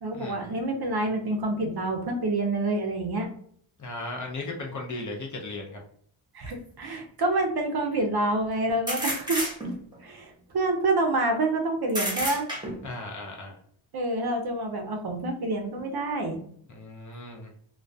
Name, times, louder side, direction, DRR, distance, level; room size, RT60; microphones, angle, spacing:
voice 1, 0.0-3.3 6.3-9.4 10.0-12.5 13.9-16.4, right 2 dB, 50° right, 4 dB, 0.5 m, -27 dB
voice 2, 3.8-5.8 12.8-13.6 16.7-17.5, left 2 dB, 40° left, 1 dB, 0.4 m, -36 dB
sound 1, 6.5-6.6 8.9-10.0 11.9-12.9, right 1 dB, 10° right, 0.8 m, -30 dB
2.2 x 2.2 x 2.5 m, 0.62 s
wide cardioid pair, 145°, 49 cm